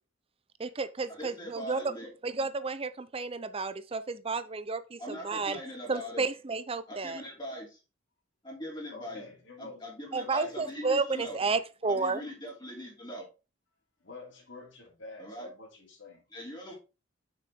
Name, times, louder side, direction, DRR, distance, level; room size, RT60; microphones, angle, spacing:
voice 1, 0.6-1.9 2.2-5.6 5.9-7.2 10.1-12.2, right 4 dB, 30° right, 0.6 m, -32 dB
voice 2, 1.2-2.1 5.0-6.3 6.9-7.8 8.4-9.2 9.6-11.4 11.9-13.3 15.2-15.5 16.3-16.7, equal, 20° left, 2.8 m, -41 dB
voice 3, 8.9-9.8 10.2-11.6 11.8-11.9 14.0-16.2 16.7-16.8, left 3 dB, 65° left, 2.8 m, -48 dB
6.8 x 6.5 x 3.5 m
head